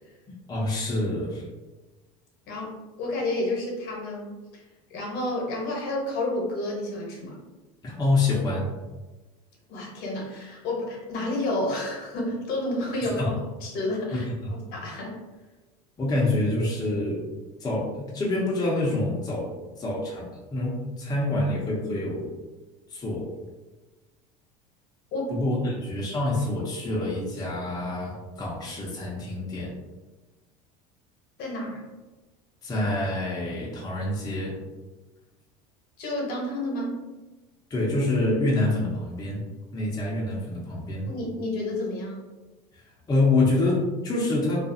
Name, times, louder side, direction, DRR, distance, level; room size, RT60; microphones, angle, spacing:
voice 1, 0.3-1.4 7.8-8.7 13.2-13.3 14.1-14.2 16.0-17.2 17.6-19.5 19.8-22.3 22.9-23.3 25.3-29.7 32.6-34.5 37.7-39.4 39.7-41.1 43.1-44.6, left 2 dB, 20° left, -5 dB, 0.6 m, -26 dB
voice 2, 3.0-4.3 4.9-7.4 9.7-13.3 13.6-15.2 25.1-25.3 31.4-31.8 36.0-37.0 41.0-42.2, left 1 dB, 55° left, -2 dB, 0.9 m, -30 dB
2.4 x 2.3 x 2.6 m, 1.2 s
supercardioid pair, 95°, 19 cm